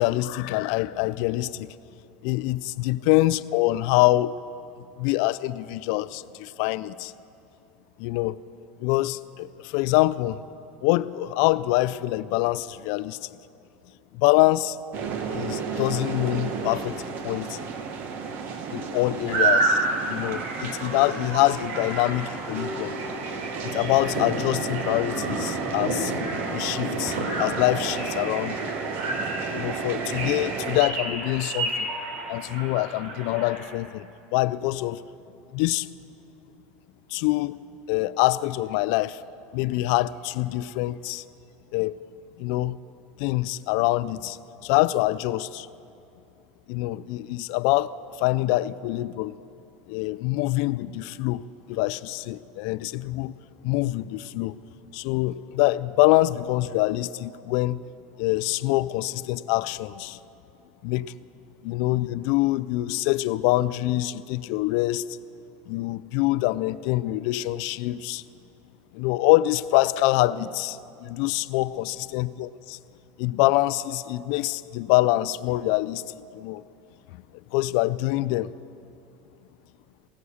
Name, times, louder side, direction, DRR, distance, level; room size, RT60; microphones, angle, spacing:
voice 1, 0.0-1.7 2.2-4.4 5.0-7.1 8.0-8.4 8.8-10.4 10.8-13.3 14.1-14.8 15.0-17.6 18.7-19.8 20.1-22.9 23.6-26.1 26.5-28.7 29.5-31.9 32.3-35.0 35.5-35.9 37.1-37.6 37.9-39.2 39.5-41.2 41.7-41.9 42.4-42.8 43.2-44.4 44.6-45.7 46.7-47.9 48.2-49.4 49.9-53.3 53.6-54.5 54.9-57.8 58.2-60.2 60.8-61.1 61.6-65.2 65.7-68.2 68.9-72.8 73.2-76.6 77.5-78.5, left 17 dB, 60° left, 18 dB, 0.4 m, -25 dB
sound 1, 14.9-30.8, right 5 dB, 40° right, 1.0 m, -33 dB
sound 2, 19.3-33.6, right 2 dB, 80° right, 3.3 m, -30 dB
16.5 x 11.0 x 7.0 m, 2.7 s
supercardioid pair, 160°, 5 cm